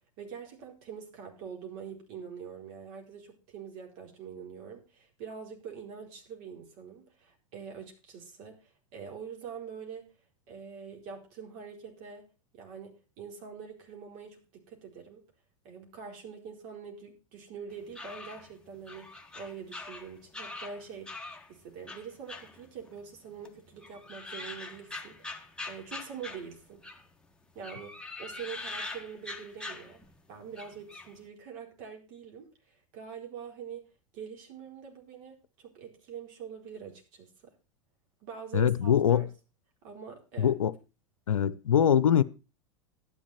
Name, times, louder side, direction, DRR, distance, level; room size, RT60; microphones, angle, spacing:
voice 1, 0.0-10.1 10.5-12.3 12.5-15.2 15.6-21.1 21.5-26.8 27.5-30.0 30.3-33.8 34.1-37.5 38.2-39.3 39.8-40.5, right 6 dB, 55° right, 4.4 m, -44 dB
sound 1, 17.7-21.5 21.9-23.2 23.4-27.1 27.6-30.2 30.5-31.1, left 2 dB, 5° left, 1.6 m, -43 dB
voice 2, 38.5-39.3 40.4-40.7 41.3-42.2, left 9 dB, 85° left, 0.6 m, -23 dB
12.5 x 10.0 x 4.2 m
hypercardioid pair, 90°, 17 cm